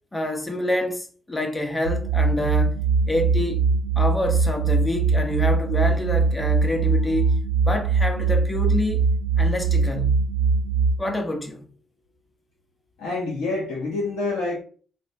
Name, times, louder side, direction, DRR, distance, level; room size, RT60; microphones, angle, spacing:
voice 1, 0.1-2.8 3.1-7.3 7.6-9.1 9.4-10.2 11.0-11.7, left 1 dB, 20° left, 0.8 m, -27 dB
sound 1, 1.8-10.9, right 4 dB, 85° right, 0.4 m, -21 dB
voice 2, 13.0-14.6, left 3 dB, 75° left, 0.6 m, -27 dB
3.2 x 2.0 x 2.6 m
hypercardioid pair, 40°, 0 cm